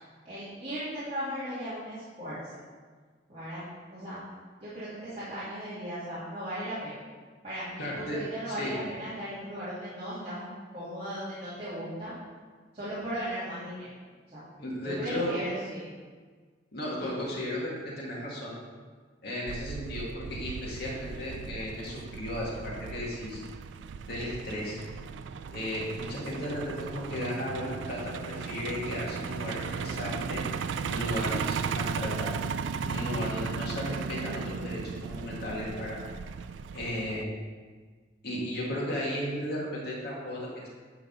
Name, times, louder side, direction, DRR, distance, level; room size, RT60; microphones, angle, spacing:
voice 1, 0.2-2.5 3.3-3.6 3.9-4.2 4.6-6.9 7.4-10.5 10.7-12.1 12.7-13.9 14.3-14.4 14.8-15.8 16.9-17.0, equal, 35° right, -13 dB, 2.5 m, -37 dB
voice 2, 7.8-8.2 8.5-8.7 14.6-15.3 16.7-18.5 19.2-23.4 24.1-24.8 25.5-30.4 30.8-32.3 32.8-36.0 36.7-37.3 38.2-40.7, left 1 dB, 60° left, -5 dB, 2.0 m, -35 dB
Truck, 19.5-37.2, right 6 dB, 75° right, 0.3 m, -36 dB
11.0 x 4.0 x 5.3 m, 1.5 s
head